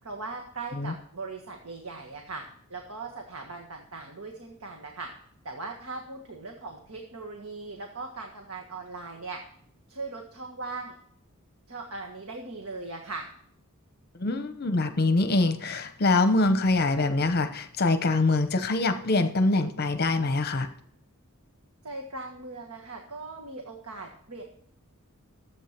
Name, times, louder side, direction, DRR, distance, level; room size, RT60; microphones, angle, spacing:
voice 1, 0.0-2.4 2.7-5.1 5.4-9.4 9.9-10.9 11.7-13.3 21.8-24.4, right 3 dB, 80° right, 2 dB, 1.5 m, -39 dB
voice 2, 14.2-20.7, left 2 dB, 45° left, 10 dB, 0.9 m, -24 dB
13.5 x 8.3 x 5.9 m, 0.64 s
head